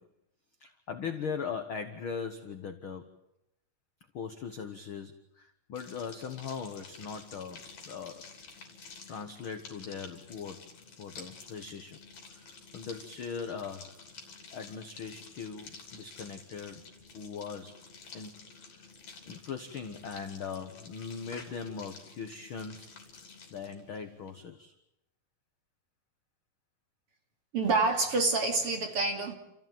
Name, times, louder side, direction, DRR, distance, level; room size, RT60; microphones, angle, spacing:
voice 1, 0.6-3.1 4.1-8.3 9.1-10.7 11.0-12.0 12.3-14.0 14.5-16.8 17.1-17.8 18.1-18.9 19.3-22.9 23.5-24.7, left 6 dB, 70° left, 8 dB, 1.2 m, -40 dB
sound 1, 5.7-24.4, left 4 dB, 50° left, 4.2 m, -51 dB
voice 2, 27.5-29.4, right 3 dB, 40° right, 3 dB, 3.1 m, -27 dB
29.5 x 14.5 x 9.2 m, 0.87 s
omnidirectional pair, 4.1 m